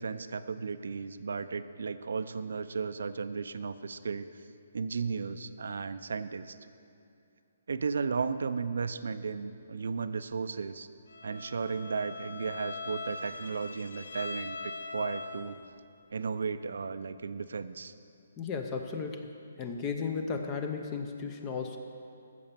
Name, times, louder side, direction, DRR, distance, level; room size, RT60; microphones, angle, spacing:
voice 1, 0.0-4.4 4.7-6.6 7.7-10.9 11.2-15.6 16.1-17.9, right 5 dB, 75° right, 12 dB, 0.6 m, -35 dB
Bowed string instrument, 11.1-15.8, left 3 dB, 85° left, 0.8 m, -41 dB
voice 2, 18.4-19.3 19.6-21.8, left 5 dB, 20° left, 4 dB, 0.6 m, -35 dB
14.5 x 6.9 x 6.9 m, 2.6 s
hypercardioid pair, 165°, 0 cm